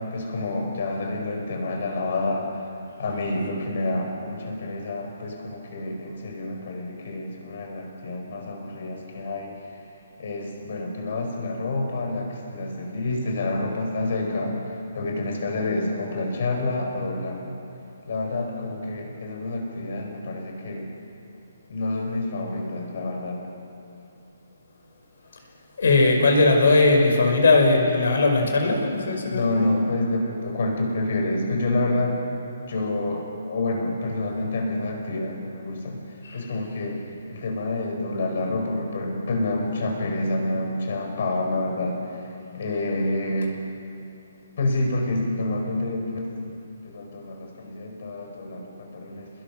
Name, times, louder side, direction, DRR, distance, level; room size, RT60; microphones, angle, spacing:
voice 1, 0.0-2.7 3.0-9.6 10.2-17.6 18.0-20.9 21.7-23.5 29.3-32.2 32.7-36.0 36.3-37.0 37.3-42.3 42.5-43.5 44.6-49.3, left 2 dB, 50° left, 2 dB, 5.1 m, -28 dB
voice 2, 25.8-29.7 36.2-36.4, left 3 dB, 70° left, 2 dB, 5.4 m, -19 dB
29.0 x 20.5 x 6.1 m, 2.6 s
hypercardioid pair, 170°, 0 cm